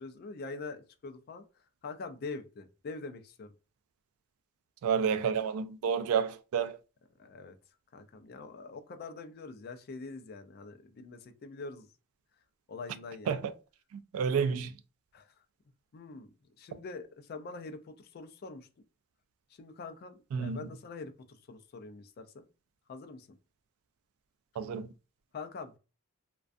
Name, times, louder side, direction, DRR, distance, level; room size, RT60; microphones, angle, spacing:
voice 1, 0.0-1.4 1.8-3.5 7.2-7.6 7.9-11.9 12.7-13.4 15.1-15.3 15.9-18.7 19.5-22.4 22.9-23.3 25.3-25.8, left 4 dB, 45° left, 0.3 m, -44 dB
voice 2, 4.8-6.8 13.3-13.5 13.9-14.7 20.3-20.7 24.6-24.9, right 6 dB, 75° right, 0.3 m, -30 dB
2.4 x 2.2 x 2.4 m
head